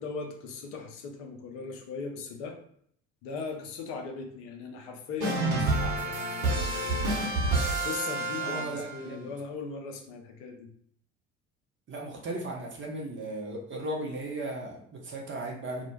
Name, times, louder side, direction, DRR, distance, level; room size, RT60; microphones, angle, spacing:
voice 1, 0.0-2.6 3.2-7.3 7.8-10.7, left 4 dB, 60° left, 3 dB, 0.6 m, -39 dB
sound 1, 5.2-9.1, right 2 dB, 50° right, 1.0 m, -28 dB
voice 2, 8.4-9.3 11.9-15.9, right 1 dB, 30° right, -1 dB, 0.8 m, -36 dB
2.3 x 2.1 x 3.1 m, 0.63 s
figure-of-eight pair, 55°, 39 cm